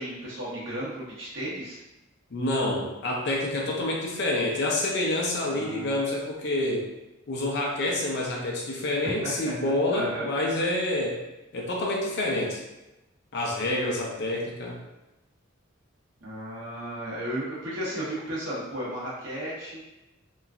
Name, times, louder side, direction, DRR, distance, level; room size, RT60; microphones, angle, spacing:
voice 1, 0.0-1.8 5.5-6.0 9.0-10.3 16.2-19.8, right 1 dB, 65° right, -8 dB, 1.1 m, -34 dB
voice 2, 2.3-6.9 7.3-11.2 11.5-12.6 13.3-14.8, left 1 dB, 55° left, -1 dB, 0.5 m, -27 dB
2.9 x 2.4 x 2.4 m, 0.99 s
head